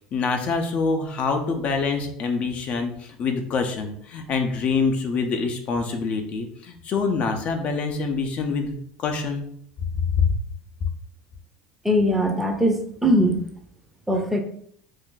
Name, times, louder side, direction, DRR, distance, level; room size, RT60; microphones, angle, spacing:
voice 1, 0.1-9.5 10.1-10.4, left 4 dB, 45° left, 5 dB, 0.5 m, -25 dB
voice 2, 11.8-13.4 14.1-14.4, equal, 5° right, 3 dB, 0.6 m, -21 dB
2.5 x 2.2 x 3.7 m, 0.65 s
supercardioid pair, 110°, 3 cm